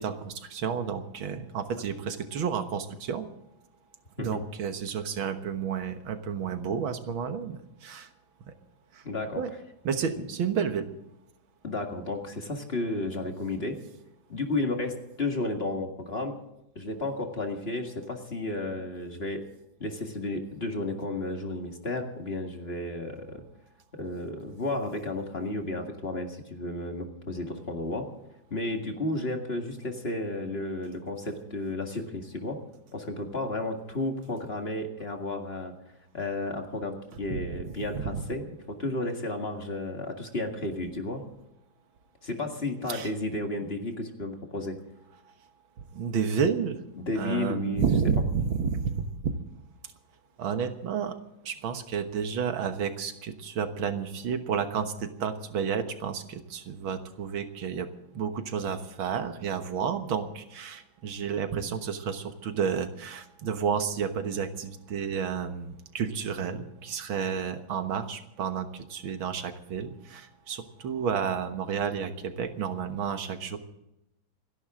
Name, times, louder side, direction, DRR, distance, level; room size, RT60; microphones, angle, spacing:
voice 1, 0.0-3.3 4.2-8.1 8.5-8.6 8.9-9.0 9.4-9.5 9.8-10.8 37.9-38.2 42.9-43.1 45.3-45.4 45.9-46.8 47.2-49.4 50.4-51.2 51.4-57.9 58.1-73.6, right 6 dB, 90° right, 8 dB, 2.1 m, -31 dB
voice 2, 9.0-9.4 11.6-13.8 14.3-16.4 16.8-19.4 19.8-23.4 23.9-28.1 28.5-32.6 32.9-35.7 36.1-41.2 42.2-44.8 47.0-47.9, left 2 dB, 30° left, 3 dB, 2.1 m, -32 dB
28.5 x 11.0 x 3.8 m, 0.88 s
omnidirectional pair, 2.1 m